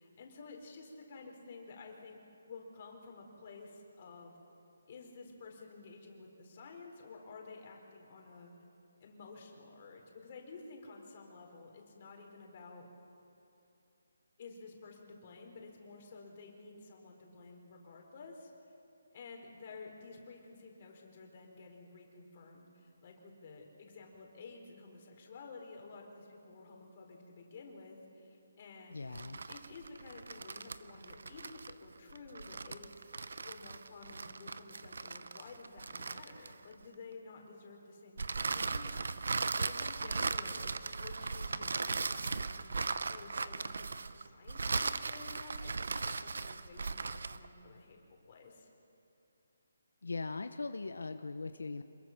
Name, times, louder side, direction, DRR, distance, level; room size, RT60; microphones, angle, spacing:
voice 1, 0.0-2.2 2.5-4.4 4.9-8.5 9.0-12.9 14.4-18.5 19.1-29.0 29.5-32.9 33.4-48.0 48.3-48.7, left 4 dB, 35° left, 1 dB, 4.0 m, -52 dB
voice 2, 28.9-29.4 50.0-51.8, left 3 dB, 90° left, 8 dB, 0.9 m, -40 dB
sound 1, 29.0-36.8 38.2-47.5, right 4 dB, 70° right, 0.8 m, -38 dB
27.0 x 21.5 x 5.9 m, 2.8 s
hypercardioid pair, 170°, 0 cm